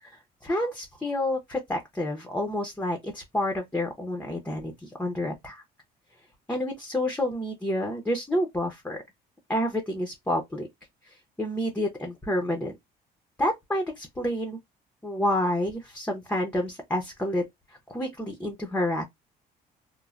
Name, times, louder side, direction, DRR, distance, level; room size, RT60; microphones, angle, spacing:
voice 1, 0.0-5.6 6.5-9.0 9.5-10.7 11.0-12.7 13.4-14.6 15.0-19.1, left 1 dB, 10° left, 0.6 m, -29 dB
3.1 x 2.1 x 2.3 m
cardioid pair, 110°, 17 cm